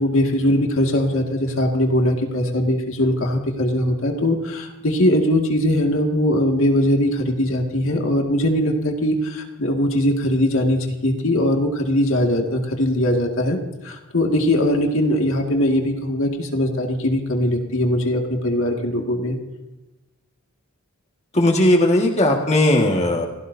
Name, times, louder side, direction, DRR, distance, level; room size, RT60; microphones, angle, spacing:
voice 1, 0.0-13.6 13.8-19.4, left 1 dB, 70° left, 2 dB, 2.1 m, -20 dB
voice 2, 21.3-23.3, left 1 dB, 30° left, 1 dB, 1.8 m, -17 dB
29.0 x 17.0 x 2.7 m, 1.1 s
head